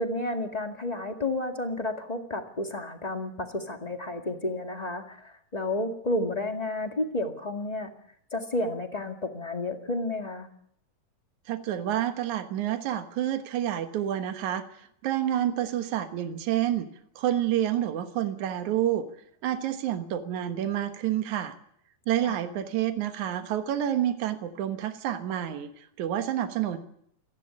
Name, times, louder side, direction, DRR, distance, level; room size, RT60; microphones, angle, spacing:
voice 1, 0.0-7.9 8.3-10.5 22.2-22.3, left 1 dB, 15° left, 4 dB, 1.5 m, -31 dB
voice 2, 11.5-16.9 17.2-19.1 19.4-21.5 22.1-26.8, right 11 dB, 75° right, 8 dB, 2.8 m, -28 dB
28.0 x 11.0 x 9.9 m, 0.69 s
omnidirectional pair, 3.5 m